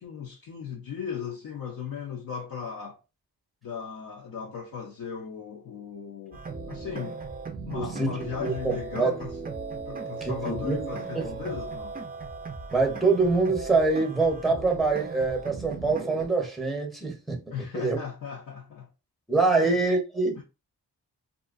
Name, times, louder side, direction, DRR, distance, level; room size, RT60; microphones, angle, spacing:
voice 1, 0.0-3.0 3.6-7.2 7.7-9.3 9.9-11.9 17.5-18.9 19.5-19.8 20.4-20.5, left 7 dB, 55° left, 0.5 m, -37 dB
sound 1, 6.3-16.3, right 4 dB, 25° right, 0.4 m, -37 dB
voice 2, 7.7-9.1 10.2-10.9 11.1-11.3 12.7-17.4 17.7-18.0 19.3-20.4, right 3 dB, ahead, 0.8 m, -25 dB
2.4 x 2.1 x 2.4 m
cardioid pair, 70°, 41 cm